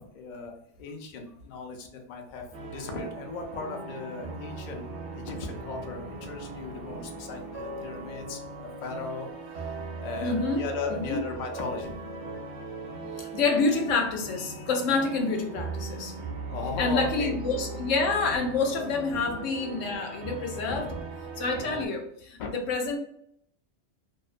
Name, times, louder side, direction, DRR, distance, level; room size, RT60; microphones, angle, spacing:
voice 1, 0.0-4.9 5.1-9.3 9.5-9.7 10.0-12.0 12.3-12.5 16.5-17.3 19.1-19.4 20.7-21.0 22.4-22.5, left 4 dB, 60° left, 2 dB, 0.5 m, -37 dB
sound 1, 2.5-21.9, right 3 dB, 65° right, 0.9 m, -39 dB
voice 2, 10.2-11.2 13.2-16.1 16.8-20.9 21.4-23.0, left 3 dB, 85° left, 3 dB, 0.9 m, -28 dB
2.5 x 2.1 x 2.4 m, 0.69 s
omnidirectional pair, 1.3 m